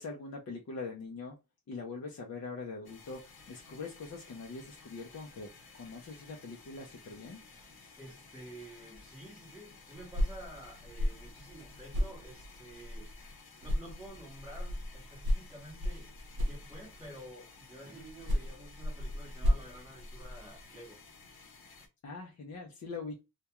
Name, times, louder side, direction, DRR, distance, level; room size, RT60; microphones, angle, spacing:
voice 1, 0.0-1.4 1.7-7.4 22.0-23.2, left 4 dB, 45° left, 0.5 m, -43 dB
sound 1, 2.8-21.9, left 4 dB, 75° left, 0.8 m, -55 dB
voice 2, 8.0-13.1 13.6-16.2 16.5-21.0, right 1 dB, 5° right, 0.8 m, -50 dB
sound 2, 9.9-13.3 13.6-17.2 18.0-20.6, left 1 dB, 75° right, 0.6 m, -35 dB
2.3 x 2.2 x 2.8 m
wide cardioid pair, 180°, 38 cm